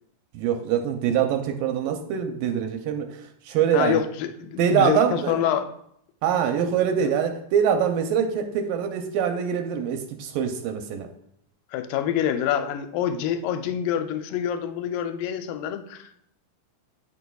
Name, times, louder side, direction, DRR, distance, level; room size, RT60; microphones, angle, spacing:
voice 1, 0.3-4.0 4.6-5.5 6.2-11.1, right 8 dB, 80° right, 5 dB, 2.2 m, -24 dB
voice 2, 3.7-5.6 7.0-7.1 11.7-16.2, left 10 dB, 80° left, 8 dB, 2.1 m, -26 dB
9.5 x 6.1 x 2.3 m, 0.71 s
omnidirectional pair, 4.1 m